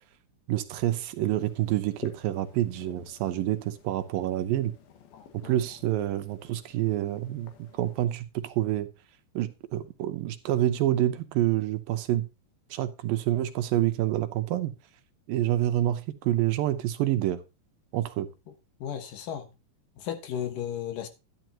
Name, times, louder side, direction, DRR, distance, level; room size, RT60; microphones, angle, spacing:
voice 1, 0.5-4.7 5.3-8.9 9.4-12.3 12.7-14.7 15.3-17.4 17.9-18.3, right 13 dB, 75° right, 2.6 m, -27 dB
sound 1, 1.3-8.1, left 7 dB, 85° left, 3.3 m, -51 dB
voice 2, 5.1-5.7 18.8-19.5 20.0-21.1, left 9 dB, 70° left, 3.0 m, -35 dB
11.5 x 10.5 x 2.8 m
omnidirectional pair, 4.2 m